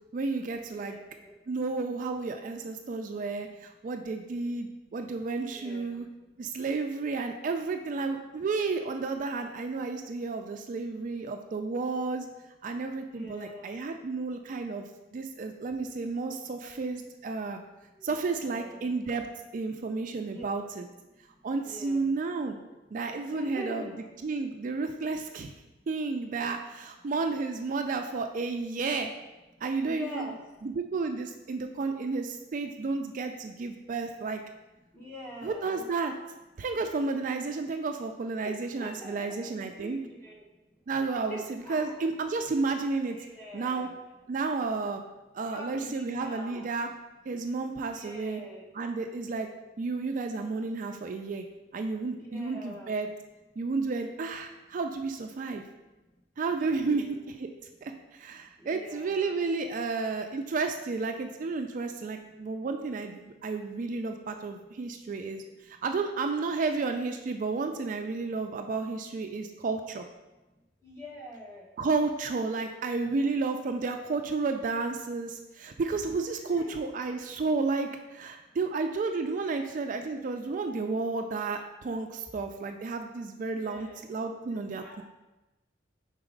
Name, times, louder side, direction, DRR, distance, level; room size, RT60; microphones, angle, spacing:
voice 1, 0.1-1.0 1.5-6.1 6.4-12.3 12.6-17.6 18.0-19.2 19.5-20.9 21.4-22.6 22.9-23.9 24.2-29.1 29.6-30.3 30.6-34.4 35.4-36.1 36.6-40.0 40.9-43.2 43.5-43.9 44.3-45.0 45.3-46.9 47.3-48.4 48.7-49.5 49.8-51.4 51.7-53.1 53.6-55.7 56.4-57.5 57.8-70.0 71.8-85.0, right 4 dB, 45° right, 5 dB, 0.3 m, -32 dB
voice 2, 0.7-1.3 5.5-6.0 13.1-13.7 18.0-18.9 20.2-20.4 21.6-22.1 23.3-24.1 29.8-30.4 34.9-35.8 38.4-38.5 38.8-40.3 41.3-42.0 43.2-43.9 45.4-46.7 47.9-48.7 52.1-52.9 56.6-57.2 58.6-59.3 70.8-71.7 76.4-76.7 83.6-84.0 84.5-85.0, equal, 15° left, -5 dB, 1.2 m, -44 dB
4.8 x 4.0 x 5.1 m, 1.1 s
head